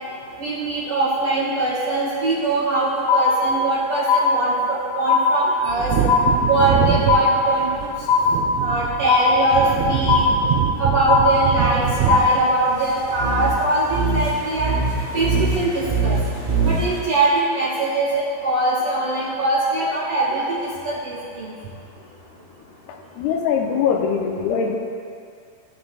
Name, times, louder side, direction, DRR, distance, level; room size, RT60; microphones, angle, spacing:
voice 1, 0.4-5.9 6.5-7.9 8.6-14.8 15.1-16.1 16.6-21.5, right 2 dB, 50° right, -8 dB, 1.9 m, -22 dB
sound 1, 3.1-3.8 4.1-4.8 5.1-5.8 6.1-6.8 7.1-7.8 8.1-8.8 9.1-9.8 10.1-10.8 11.1-11.8 12.1-12.8, left 5 dB, 50° left, 1.2 m, -20 dB
Wind / Thunder, 5.7-13.9 14.2-14.3, right 9 dB, 75° right, 2.3 m, -25 dB
sound 2, 13.1-17.0, right 3 dB, 20° right, 1.4 m, -23 dB
voice 2, 23.2-24.8, left 6 dB, 90° left, 1 dB, 2.7 m, -21 dB
16.5 x 6.9 x 2.3 m, 2.4 s
omnidirectional pair, 4.5 m